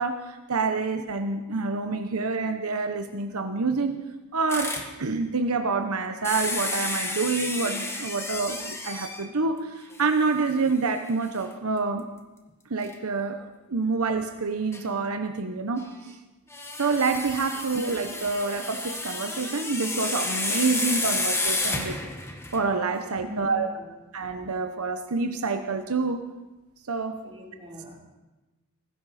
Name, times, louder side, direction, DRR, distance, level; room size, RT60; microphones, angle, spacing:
voice 1, 0.0-4.0 4.3-12.0 12.7-15.9 16.8-22.0 22.5-23.7 24.1-26.2 26.9-27.2, right 4 dB, 85° right, 6 dB, 1.0 m, -27 dB
sound 1, 4.5-4.9 6.2-9.3 9.9-10.0 10.5-10.6 12.8-12.9 14.7-14.8 16.5-22.7, left 2 dB, 10° left, 1.5 m, -31 dB
voice 2, 23.2-23.8 27.2-27.9, left 1 dB, 25° right, -3 dB, 3.9 m, -41 dB
18.0 x 15.5 x 4.3 m, 1.1 s
head